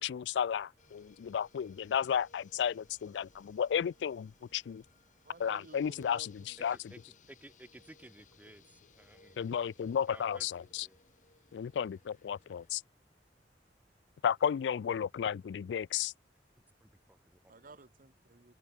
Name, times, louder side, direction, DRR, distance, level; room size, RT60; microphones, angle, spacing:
voice 1, 0.0-4.8 5.4-6.3 6.6-6.8 9.4-10.9 11.5-12.8 14.2-16.1, left 8 dB, 75° left, 0.3 m, -33 dB
sound 1, 0.8-12.7, left 4 dB, 45° left, 2.4 m, -65 dB
voice 2, 5.2-6.8 17.5-18.5, right 3 dB, 50° right, 1.2 m, -55 dB
voice 3, 6.7-9.6 10.1-11.0 16.8-17.8, right 1 dB, 10° right, 1.1 m, -57 dB
open air
head